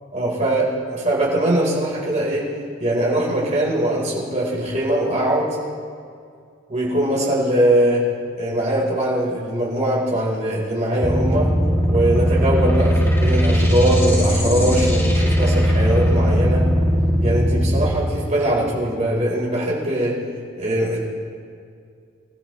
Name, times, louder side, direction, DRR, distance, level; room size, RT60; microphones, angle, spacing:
voice 1, 0.1-2.5 2.8-5.5 6.7-8.0 8.4-11.5 11.9-16.6 17.2-20.1 20.5-21.0, right 1 dB, 35° right, -5 dB, 4.5 m, -21 dB
sound 1, 11.0-17.9, equal, 10° left, 1.6 m, -18 dB
26.0 x 14.0 x 3.3 m, 2.3 s
head